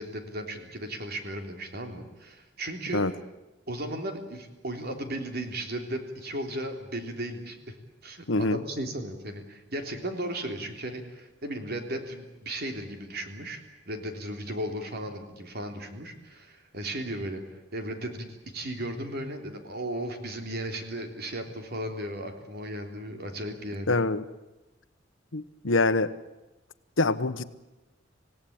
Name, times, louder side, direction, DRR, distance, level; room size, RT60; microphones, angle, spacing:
voice 1, 0.0-3.1 3.7-7.7 8.0-18.3 18.5-24.0, right 1 dB, 55° right, 5 dB, 3.3 m, -36 dB
voice 2, 8.3-8.6 23.9-24.2 25.3-26.1 27.0-27.4, left 3 dB, 75° left, 13 dB, 1.1 m, -25 dB
26.5 x 17.5 x 8.8 m, 1.1 s
head